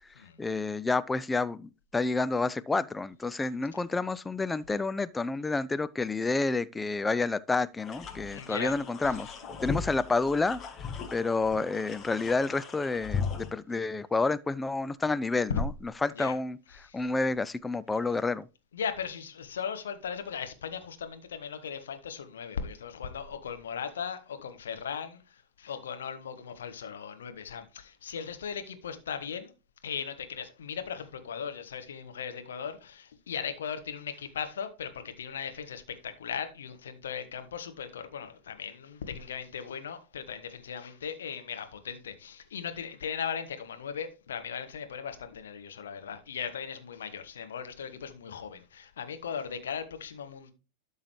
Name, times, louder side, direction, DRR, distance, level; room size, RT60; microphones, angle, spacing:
voice 1, 0.4-9.3 9.6-10.6 11.1-16.6 16.9-18.5, left 3 dB, 10° left, 0.4 m, -29 dB
sound 1, 7.8-13.5, left 6 dB, 25° left, 1.3 m, -38 dB
voice 2, 8.3-8.8 15.5-15.6 16.2-16.3 16.8-17.0 18.7-29.5 29.8-50.5, left 7 dB, 65° left, 1.2 m, -38 dB
12.5 x 5.5 x 3.2 m
figure-of-eight pair, 90°, 0 cm